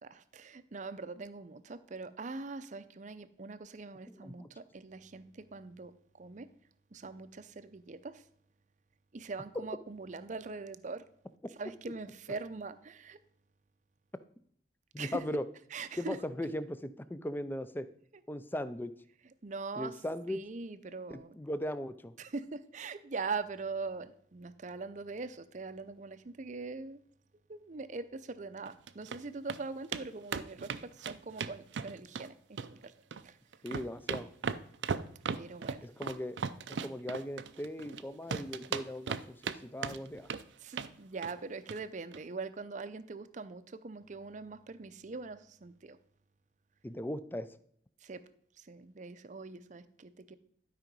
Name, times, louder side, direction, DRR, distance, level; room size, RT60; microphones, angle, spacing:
voice 1, 0.0-6.5 6.9-8.2 9.1-11.1 11.6-13.2 15.0-15.2 15.7-16.2 19.4-20.0 20.3-21.4 22.2-27.0 27.5-32.9 33.2-33.4 35.3-35.8 40.6-46.0 48.0-48.2 48.6-50.4, right 4 dB, 45° right, 13 dB, 0.6 m, -42 dB
voice 2, 4.1-4.5 9.5-9.6 14.9-15.4 16.0-17.9 18.3-18.9 19.8-20.4 21.1-22.1 33.6-34.3 35.8-36.4 36.8-39.4 39.6-40.3 46.8-47.5, left 1 dB, 10° left, 13 dB, 0.5 m, -38 dB
sound 1, 28.6-29.2 29.5-29.6 29.9-30.0 30.3-32.3 32.6-33.2 33.5-38.0 38.3-39.6 39.8-40.4 40.7-40.9 41.2-41.4 41.7-41.8 42.1-42.2, right 6 dB, 85° right, 0.5 m, -37 dB
12.0 x 5.0 x 5.3 m, 0.64 s
head